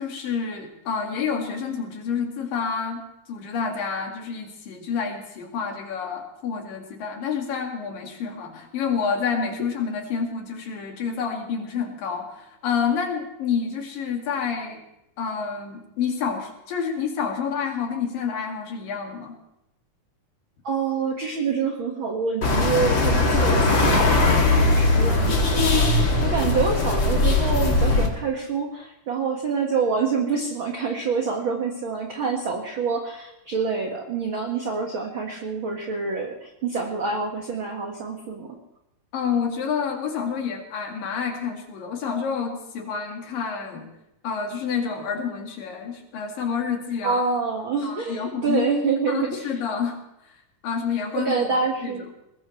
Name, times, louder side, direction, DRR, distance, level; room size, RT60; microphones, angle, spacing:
voice 1, 0.0-3.0 3.3-14.8 15.2-19.4 39.1-43.9 44.2-47.2 47.8-48.7 49.1-50.0 50.3-51.4 51.8-52.0, left 6 dB, 80° left, 2 dB, 4.0 m, -28 dB
voice 2, 20.6-25.8 26.2-38.5 47.0-49.5 51.2-52.0, right 5 dB, 45° right, 1 dB, 2.2 m, -26 dB
sound 1, 22.4-28.1, left 2 dB, 35° left, 3.0 m, -20 dB
21.5 x 20.0 x 3.3 m, 0.84 s
omnidirectional pair, 3.9 m